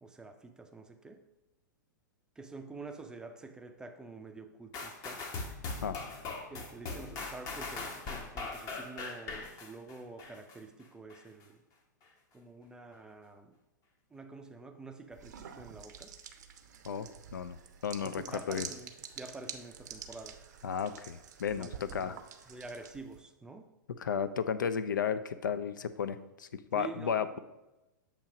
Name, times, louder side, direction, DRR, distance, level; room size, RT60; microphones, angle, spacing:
voice 1, 0.0-1.2 2.4-5.2 6.5-11.6 12.3-13.5 14.1-16.1 18.0-20.4 21.6-22.2 22.5-23.6 26.7-27.4, right 3 dB, 5° right, 5 dB, 0.4 m, -48 dB
sound 1, 4.7-10.6 11.1-11.2, left 3 dB, 30° left, 0.9 m, -40 dB
sound 2, 15.1-23.2, right 8 dB, 55° right, 0.6 m, -48 dB
voice 2, 16.9-18.7 20.6-22.2 24.0-27.4, left 7 dB, 70° left, 12 dB, 0.4 m, -34 dB
7.0 x 3.0 x 4.9 m, 0.99 s
figure-of-eight pair, 105°, 11 cm